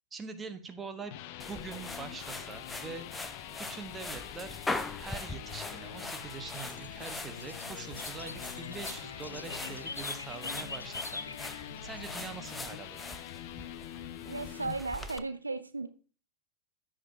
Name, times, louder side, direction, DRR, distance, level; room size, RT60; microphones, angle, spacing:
voice 1, 0.1-1.2 1.5-3.4 3.7-4.6 5.0-13.1, right 4 dB, 15° right, 7 dB, 1.3 m, -44 dB
sound 1, 0.8-14.8, left 12 dB, 45° left, 0.6 m, -45 dB
sound 2, 1.4-15.2, left 2 dB, 10° left, 0.6 m, -42 dB
sound 3, 5.7-12.3, left 3 dB, 80° left, 0.3 m, -44 dB
voice 2, 14.3-15.9, right 3 dB, 80° right, 10 dB, 0.7 m, -35 dB
14.5 x 5.1 x 2.8 m, 0.37 s
figure-of-eight pair, 90°, 0 cm